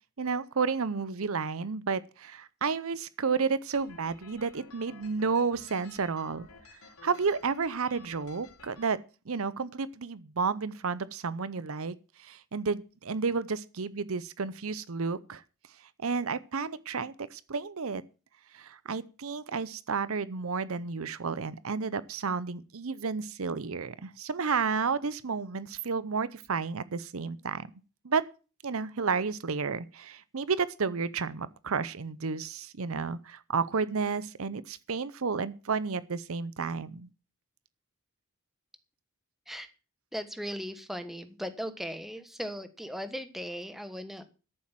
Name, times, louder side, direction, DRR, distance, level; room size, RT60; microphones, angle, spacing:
voice 1, 0.2-6.5 7.0-9.0 9.3-15.4 16.0-18.0 18.5-27.7 28.0-28.2 28.6-37.1, right 5 dB, 65° right, 0.7 m, -31 dB
sound 1, 3.7-8.9, left 4 dB, 75° left, 3.4 m, -53 dB
voice 2, 40.1-44.2, equal, ahead, 1.4 m, -38 dB
13.5 x 7.4 x 7.5 m
head